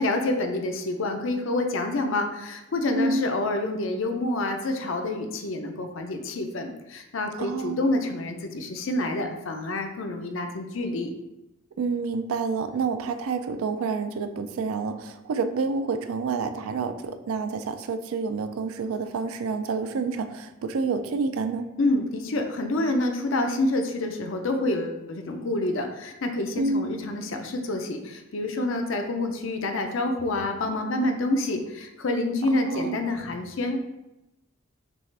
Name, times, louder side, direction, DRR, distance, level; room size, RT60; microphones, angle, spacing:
voice 1, 0.0-11.1 21.8-33.8, left 2 dB, 60° left, 5 dB, 0.5 m, -27 dB
voice 2, 2.9-3.3 7.4-7.8 11.8-21.7 26.6-26.9 32.7-33.0, right 4 dB, 75° right, 9 dB, 0.4 m, -28 dB
6.0 x 2.4 x 3.3 m, 0.96 s
head